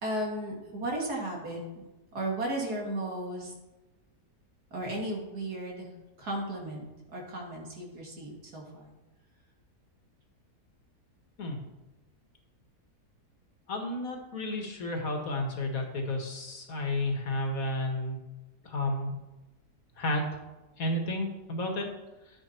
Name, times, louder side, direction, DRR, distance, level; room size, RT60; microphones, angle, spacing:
voice 1, 0.0-1.8 2.1-3.5 4.7-5.9 6.2-6.8 7.1-8.9, right 1 dB, 70° right, -2 dB, 3.2 m, -35 dB
voice 2, 13.7-18.2 18.7-19.1 20.0-20.3 20.8-21.9, left 1 dB, 60° left, 3 dB, 2.1 m, -31 dB
12.0 x 9.4 x 4.5 m, 1.1 s
omnidirectional pair, 1.7 m